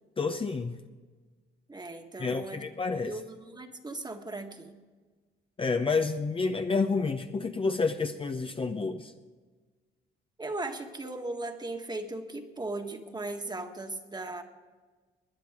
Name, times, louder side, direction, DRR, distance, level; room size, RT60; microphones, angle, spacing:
voice 1, 0.2-0.8 2.2-3.2 5.6-9.1, left 4 dB, 25° left, 7 dB, 0.7 m, -29 dB
voice 2, 1.7-2.6 3.0-4.8 10.4-14.4, right 2 dB, 20° right, 5 dB, 1.6 m, -37 dB
20.5 x 10.0 x 4.8 m, 1.4 s
cardioid pair, 90°, 20 cm